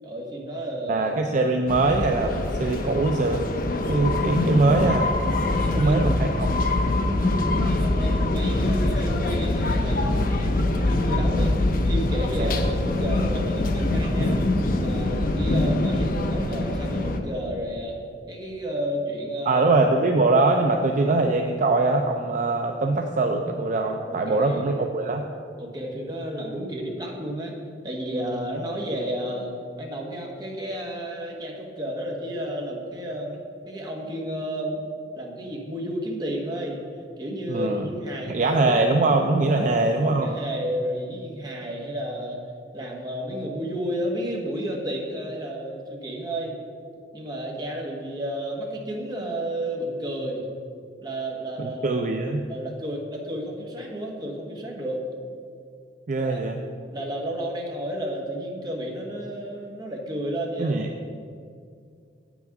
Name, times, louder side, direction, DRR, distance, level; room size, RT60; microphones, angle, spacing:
voice 1, 0.0-1.2 5.5-6.3 7.4-11.5 11.8-14.4 14.8-18.0 18.3-19.7 20.0-20.1 24.1-24.7 25.6-27.6 27.8-33.4 33.7-34.8 35.2-36.8 37.2-38.8 39.4-39.8 40.2-42.4 42.7-46.5 47.1-50.5 51.0-52.0 52.5-55.0 56.2-56.4 56.9-60.8, equal, 25° right, -1 dB, 1.3 m, -32 dB
voice 2, 0.9-3.4 3.9-5.1 5.7-6.7 12.4-12.6 19.5-25.3 37.5-37.9 38.3-40.3 51.6-52.4 56.1-56.6 60.6-60.9, right 2 dB, 45° right, 4 dB, 0.4 m, -22 dB
sound 1, 1.7-17.2, left 2 dB, 55° left, 0.7 m, -24 dB
8.2 x 6.0 x 5.9 m, 2.3 s
head